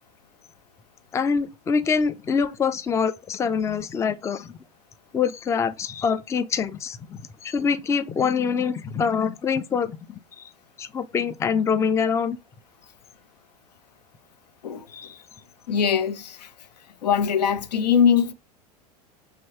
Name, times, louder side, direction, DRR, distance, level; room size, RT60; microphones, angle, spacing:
voice 1, 1.1-4.6 5.1-10.5 10.8-12.4 14.9-15.2, left 6 dB, 15° left, 0.3 m, -25 dB
voice 2, 15.7-16.5 17.0-18.3, left 7 dB, 85° left, 0.4 m, -21 dB
2.9 x 2.8 x 2.9 m
hypercardioid pair, 85°, 21 cm